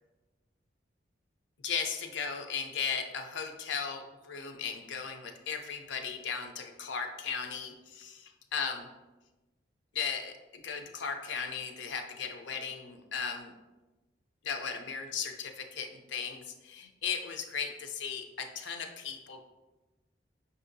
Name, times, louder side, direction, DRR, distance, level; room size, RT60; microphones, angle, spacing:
voice 1, 1.6-8.9 9.9-13.5 14.4-19.4, left 6 dB, 85° left, 5 dB, 0.5 m, -36 dB
5.6 x 2.7 x 2.6 m, 1.1 s
head